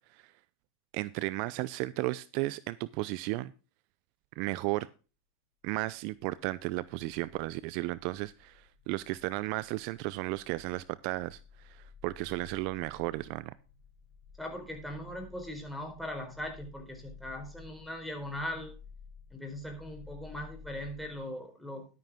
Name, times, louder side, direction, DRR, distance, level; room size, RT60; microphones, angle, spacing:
voice 1, 0.9-3.5 4.4-4.9 5.6-13.5, right 19 dB, 55° right, 19 dB, 0.5 m, -34 dB
sound 1, 5.8-21.2, left 5 dB, 70° left, 2.2 m, -54 dB
voice 2, 14.4-18.8 19.3-21.9, left 1 dB, ahead, 3 dB, 4.2 m, -40 dB
12.0 x 9.4 x 3.6 m, 0.33 s
hypercardioid pair, 110°, 0 cm